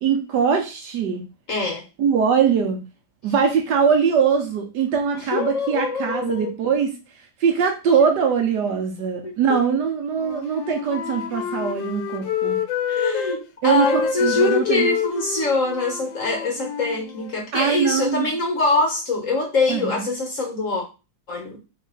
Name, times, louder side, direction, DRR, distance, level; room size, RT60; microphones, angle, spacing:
voice 1, 0.0-1.2 2.0-2.8 3.2-6.9 7.4-12.6 13.6-14.9 17.5-18.3 19.7-20.1, right 6 dB, 65° right, 3 dB, 1.1 m, -21 dB
voice 2, 1.5-1.8 5.1-6.5 9.2-9.6 12.9-20.8 21.3-21.6, left 3 dB, 50° left, 1 dB, 1.0 m, -24 dB
Wind instrument woodwind instrument, 10.1-13.4 13.7-17.5, left 8 dB, 75° left, 1.3 m, -28 dB
3.6 x 3.2 x 3.8 m, 0.30 s
omnidirectional pair, 2.2 m